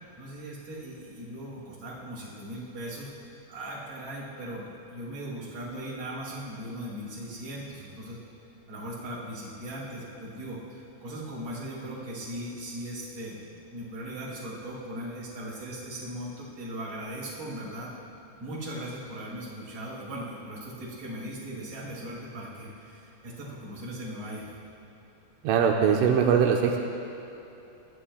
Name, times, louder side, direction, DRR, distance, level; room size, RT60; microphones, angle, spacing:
voice 1, 0.2-3.1 3.5-8.2 8.7-13.4 13.7-17.9 18.4-24.5, right 1 dB, 25° right, -7 dB, 3.4 m, -38 dB
voice 2, 25.4-26.8, right 7 dB, 85° right, 1 dB, 3.2 m, -21 dB
21.5 x 15.5 x 2.2 m, 2.9 s
omnidirectional pair, 5.9 m